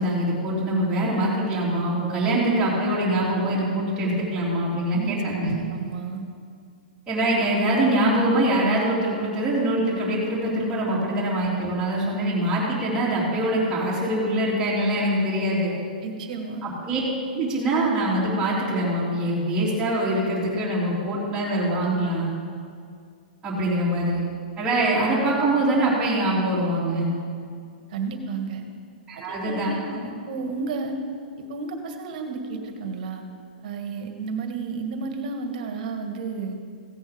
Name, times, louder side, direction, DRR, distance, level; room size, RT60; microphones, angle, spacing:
voice 1, 0.0-5.5 7.1-15.7 16.6-17.0 17.3-22.3 23.4-24.2 24.6-27.1 29.1-30.0, right 1 dB, 15° right, -8 dB, 3.3 m, -24 dB
voice 2, 5.4-6.3 16.0-16.7 27.9-28.6 29.1-31.0 31.4-33.3 33.6-36.6, right 4 dB, 55° right, 5 dB, 1.8 m, -32 dB
16.0 x 8.9 x 5.3 m, 2.2 s
hypercardioid pair, 135°, 5 cm